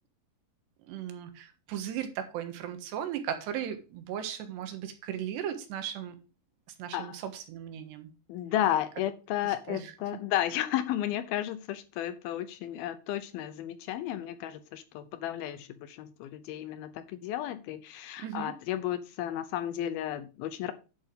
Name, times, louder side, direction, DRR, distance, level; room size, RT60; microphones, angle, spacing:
voice 1, 0.8-6.2 6.8-8.1 9.4-9.9 18.2-18.5, right 9 dB, 90° right, 7 dB, 3.5 m, -37 dB
voice 2, 8.3-20.7, left 12 dB, 80° left, 12 dB, 2.3 m, -33 dB
10.5 x 7.7 x 3.8 m, 0.33 s
omnidirectional pair, 4.8 m